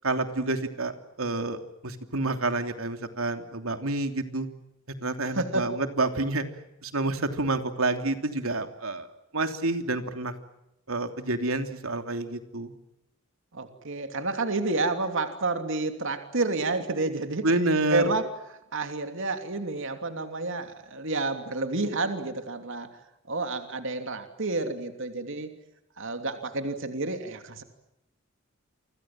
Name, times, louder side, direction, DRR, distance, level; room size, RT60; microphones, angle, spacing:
voice 1, 0.0-0.9 1.2-4.5 5.0-6.4 6.8-9.1 9.3-10.3 10.9-12.7 17.4-18.1, right 2 dB, 85° right, 7 dB, 3.1 m, -28 dB
voice 2, 5.3-5.7 13.5-17.5 17.9-18.3 18.7-22.9 23.3-25.5 26.0-27.6, right 3 dB, 65° right, 7 dB, 3.0 m, -30 dB
29.5 x 26.0 x 7.6 m, 0.86 s
head